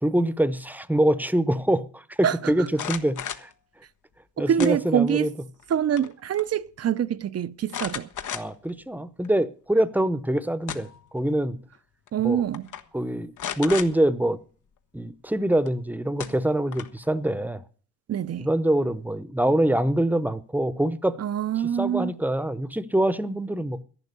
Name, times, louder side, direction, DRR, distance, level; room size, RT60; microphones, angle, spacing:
voice 1, 0.0-3.5 4.4-5.3 8.3-10.9 11.1-11.6 12.2-12.4 12.9-13.3 13.6-14.4 14.9-17.6 18.4-21.2 21.8-23.8, right 1 dB, 5° right, 0.8 m, -24 dB
sound 1, 2.7-3.5 4.6-5.2 5.6-6.1 6.4-6.5 7.7-8.7 9.2-9.3 10.4-11.1 12.1-12.2 12.5-12.8 13.4-13.9 15.7-15.8 16.2-17.0, left 9 dB, 75° left, 1.3 m, -34 dB
voice 2, 4.4-5.3 5.7-8.1 12.1-12.6 18.1-18.5 21.2-22.1, right 9 dB, 50° right, 0.7 m, -25 dB
11.0 x 11.0 x 6.8 m
cardioid pair, 85°, 31 cm